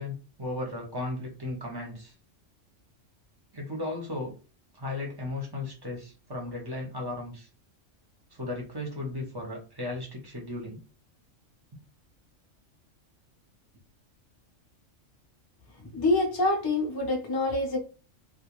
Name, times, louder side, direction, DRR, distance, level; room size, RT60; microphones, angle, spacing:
voice 1, 0.0-2.1 3.5-4.3 4.8-7.5 8.3-10.8, left 2 dB, 25° right, -1 dB, 0.6 m, -35 dB
voice 2, 15.9-17.8, left 2 dB, 30° left, 0 dB, 0.4 m, -26 dB
2.4 x 2.1 x 3.0 m, 0.34 s
omnidirectional pair, 1.3 m